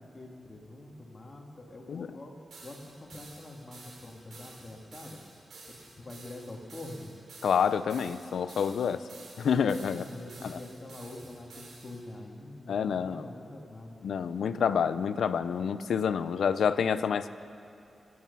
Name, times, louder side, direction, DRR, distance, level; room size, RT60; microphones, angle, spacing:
voice 1, 0.0-2.3 2.6-5.2 5.7-7.1 9.7-14.0, left 2 dB, 35° left, 0 dB, 2.5 m, -45 dB
sound 1, 2.5-12.0, right 3 dB, 80° right, 3.7 m, -51 dB
voice 2, 7.4-9.0 9.4-10.0 10.4-10.6 12.7-13.2 14.0-17.3, left 7 dB, 85° left, 13 dB, 0.5 m, -28 dB
24.0 x 9.6 x 5.5 m, 2.7 s
cardioid pair, 80°, 0 cm